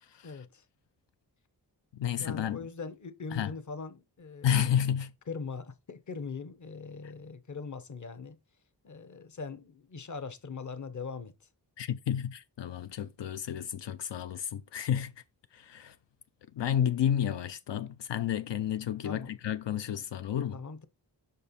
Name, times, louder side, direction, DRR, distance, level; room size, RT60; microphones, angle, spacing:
voice 1, 0.2-0.6 2.2-4.7 5.3-8.4 8.8-11.5 19.0-19.4 20.5-20.8, left 4 dB, 45° left, 0.9 m, -41 dB
voice 2, 2.0-2.6 3.3-3.5 4.4-5.1 11.8-15.1 15.5-16.0 16.5-20.6, left 9 dB, 85° left, 0.6 m, -31 dB
5.9 x 5.3 x 4.1 m
wide cardioid pair, 75°, 42 cm